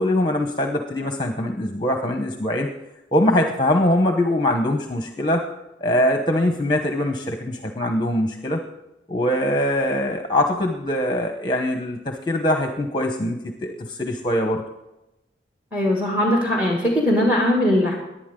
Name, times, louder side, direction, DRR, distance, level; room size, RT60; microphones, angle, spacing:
voice 1, 0.0-2.7 3.1-5.4 5.8-8.6 9.1-14.6, left 1 dB, 25° left, 4 dB, 1.0 m, -22 dB
voice 2, 15.7-17.9, left 1 dB, 10° right, -1 dB, 2.3 m, -20 dB
19.0 x 11.0 x 3.8 m, 0.93 s
head